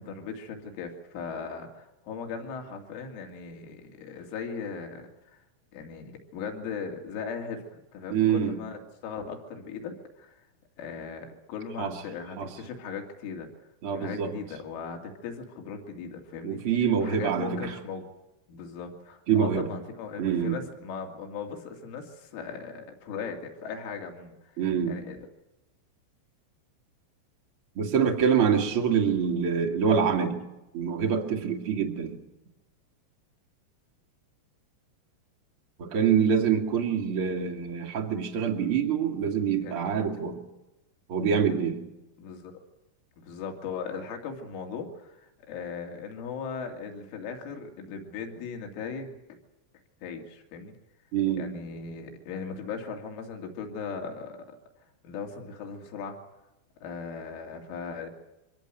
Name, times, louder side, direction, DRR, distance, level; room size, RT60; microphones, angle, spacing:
voice 1, 0.0-5.4 5.7-7.6 7.9-10.4 10.8-13.5 13.9-16.6 17.0-18.0 18.5-24.6 24.9-25.2 28.0-28.1 39.2-39.3 39.6-40.0 42.2-42.5 43.2-49.2 50.0-50.7 51.3-54.6 55.0-56.2 56.8-58.1, left 5 dB, 75° left, 3 dB, 5.1 m, -38 dB
voice 2, 8.1-8.6 11.8-12.0 12.4-12.5 13.8-14.3 16.4-17.7 19.3-19.7 20.2-20.6 24.6-25.0 27.8-30.4 30.7-32.2 35.8-40.4 41.1-41.8 51.1-51.6, right 7 dB, 40° right, 3 dB, 2.0 m, -25 dB
25.0 x 18.5 x 9.1 m, 0.97 s
omnidirectional pair, 5.8 m